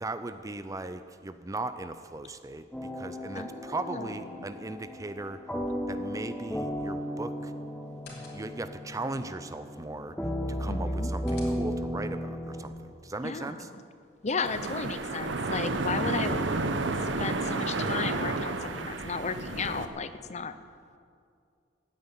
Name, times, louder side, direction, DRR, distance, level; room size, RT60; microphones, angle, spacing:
voice 1, 0.0-2.7 3.0-5.4 5.9-7.5 8.3-10.1 10.5-12.7 13.0-13.7, right 2 dB, 15° right, 11 dB, 0.5 m, -37 dB
sound 1, 2.7-12.6, equal, 5° left, 1.0 m, -35 dB
voice 2, 3.3-4.5 10.6-11.1 13.2-13.7 14.2-16.5 17.2-20.5, left 4 dB, 35° left, 11 dB, 0.7 m, -34 dB
sound 2, 7.9-8.8 10.8-12.0 14.0-15.3 17.3-18.4, left 3 dB, 60° left, 3.1 m, -55 dB
sound 3, 14.4-19.9, right 3 dB, 70° right, 1.0 m, -31 dB
15.5 x 9.5 x 9.0 m, 2.3 s
head